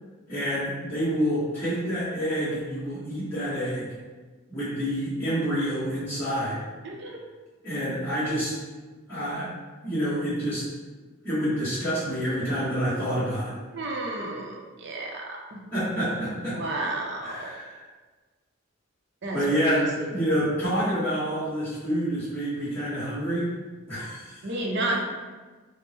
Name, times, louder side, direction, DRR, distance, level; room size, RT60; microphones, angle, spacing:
voice 1, 0.3-3.9 4.5-6.6 7.6-8.5 9.1-9.5 9.8-10.6 11.2-13.5 15.7-16.6 17.2-17.8 19.3-23.5 23.9-24.5 24.9-25.0, equal, 10° left, -13 dB, 1.2 m, -28 dB
voice 2, 6.8-7.2 13.7-15.6 16.5-17.5 19.2-20.1 24.4-24.9, right 2 dB, 60° right, -1 dB, 0.6 m, -32 dB
3.5 x 2.1 x 4.1 m, 1.3 s
head